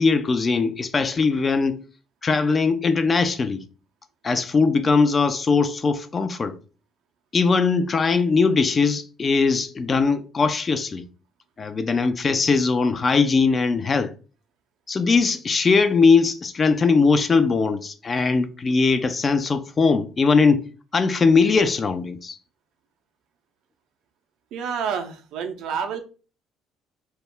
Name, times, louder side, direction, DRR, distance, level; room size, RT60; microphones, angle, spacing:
voice 1, 0.0-1.8 2.2-3.6 4.2-6.6 7.3-11.0 11.6-14.1 14.9-20.7 20.9-22.4, left 4 dB, 35° left, 0.4 m, -20 dB
voice 2, 24.5-26.0, right 6 dB, 70° right, 0.5 m, -28 dB
2.2 x 2.0 x 3.3 m
hypercardioid pair, 60°, 0 cm